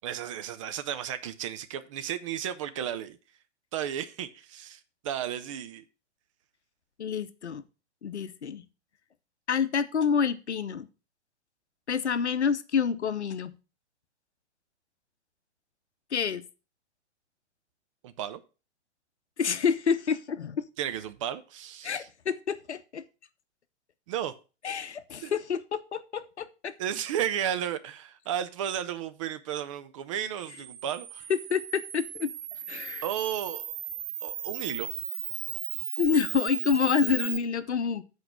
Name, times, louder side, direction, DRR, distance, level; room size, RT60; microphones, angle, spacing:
voice 1, 0.0-3.2 3.7-5.8 18.0-18.4 20.8-22.1 24.1-24.3 25.2-25.3 26.8-31.2 33.0-33.7 34.2-34.9, right 10 dB, 30° right, 0.5 m, -33 dB
voice 2, 7.0-7.6 8.0-8.6 9.5-10.9 11.9-13.5 16.1-16.4 19.4-20.7 21.8-23.0 24.6-26.7 31.3-32.3 32.7-33.0 36.0-38.0, left 6 dB, 70° left, 0.8 m, -28 dB
Camera, 30.4-37.4, right 10 dB, 45° right, 0.9 m, -36 dB
7.8 x 4.8 x 5.8 m
figure-of-eight pair, 110°, 35 cm